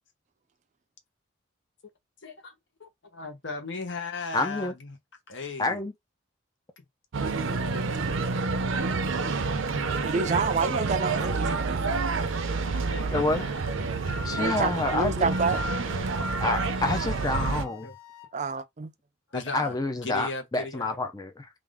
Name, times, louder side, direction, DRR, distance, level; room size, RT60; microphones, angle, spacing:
voice 1, 2.2-2.5 2.8-5.0 5.3-5.8 9.8-10.2 12.7-13.5 14.9-16.5 17.3-17.9 19.3-19.7 20.0-21.0, left 3 dB, 65° left, 1.0 m, -38 dB
voice 2, 4.3-4.7 5.6-5.9 13.1-13.5 14.2-15.4 16.4-17.9 19.3-21.5, left 2 dB, 20° left, 0.5 m, -28 dB
sound 1, 7.1-17.6, right 4 dB, 75° right, 0.6 m, -28 dB
voice 3, 10.0-11.9 14.4-15.6 18.3-18.9, right 4 dB, 35° right, 0.4 m, -28 dB
Wind instrument woodwind instrument, 12.0-18.3, left 2 dB, 80° left, 0.6 m, -42 dB
3.4 x 2.5 x 3.5 m
head